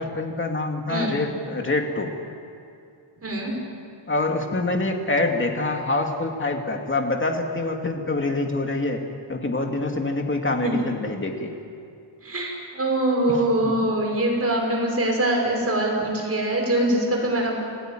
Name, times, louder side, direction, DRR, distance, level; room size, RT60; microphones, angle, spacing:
voice 1, 0.0-2.1 4.1-9.0 9.3-11.5 13.6-13.9, left 2 dB, 25° left, 2 dB, 2.6 m, -25 dB
voice 2, 3.2-3.5 10.6-10.7 12.2-17.6, right 1 dB, 30° right, 0 dB, 6.2 m, -23 dB
28.5 x 16.0 x 9.2 m, 2.5 s
wide cardioid pair, 150°, 48 cm